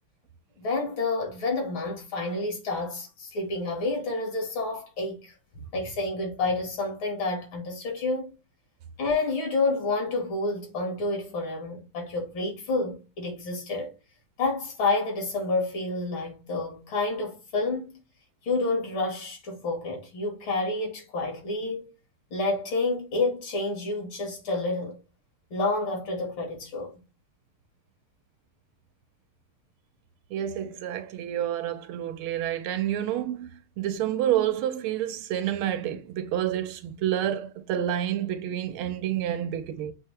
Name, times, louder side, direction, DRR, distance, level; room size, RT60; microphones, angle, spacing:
voice 1, 0.6-5.3 5.7-8.3 9.0-13.9 14.4-17.9 18.4-21.9 22.3-25.0 25.5-27.0, left 3 dB, 65° left, 2.5 m, -29 dB
voice 2, 30.3-33.5 33.8-39.9, right 11 dB, 80° right, 1.4 m, -29 dB
6.1 x 2.8 x 3.1 m
omnidirectional pair, 2.4 m